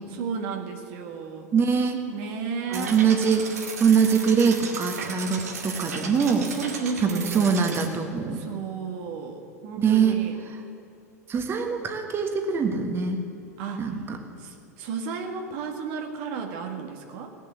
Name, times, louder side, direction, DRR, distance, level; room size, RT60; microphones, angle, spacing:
voice 1, 0.1-1.5 2.1-3.0 6.5-7.6 8.3-10.4 13.6-13.9 14.4-17.3, right 5 dB, 50° right, 3 dB, 1.5 m, -33 dB
voice 2, 1.5-2.0 2.7-6.5 7.0-8.4 9.8-10.2 11.3-13.2 13.8-14.2, right 6 dB, 25° right, 5 dB, 1.6 m, -23 dB
sound 1, 2.7-7.9, right 5 dB, 70° right, 2.1 m, -35 dB
17.5 x 7.4 x 9.6 m, 2.8 s
figure-of-eight pair, 85°, 9 cm